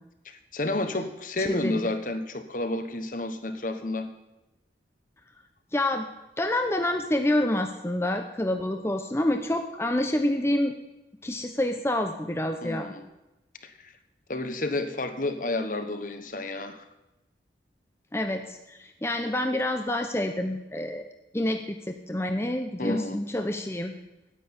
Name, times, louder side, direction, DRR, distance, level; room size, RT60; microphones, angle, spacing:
voice 1, 0.2-4.1 12.6-13.0 13.6-13.9 14.3-16.8 22.8-23.2, left 2 dB, 50° left, 9 dB, 1.2 m, -31 dB
voice 2, 1.4-1.8 5.7-6.1 6.4-10.8 11.2-12.9 18.1-21.0 21.3-23.9, left 1 dB, 15° left, 5 dB, 0.7 m, -27 dB
10.0 x 9.2 x 9.6 m, 0.96 s
head